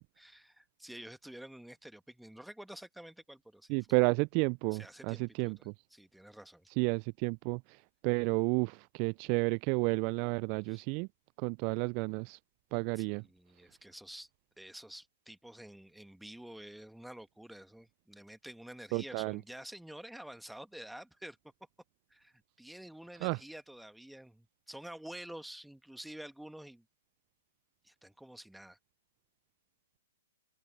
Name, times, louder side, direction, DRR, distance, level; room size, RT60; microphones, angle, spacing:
voice 1, 0.2-4.0 4.7-6.7 10.6-10.8 12.9-14.3 14.6-21.4 22.1-26.8 27.8-28.8, right 1 dB, ahead, 1.6 m, -49 dB
voice 2, 3.7-5.7 6.8-11.1 11.4-12.4 12.7-13.2 18.9-19.4 23.2-23.4, right 33 dB, 40° right, 0.4 m, -31 dB
open air
hypercardioid pair, 120°, 0 cm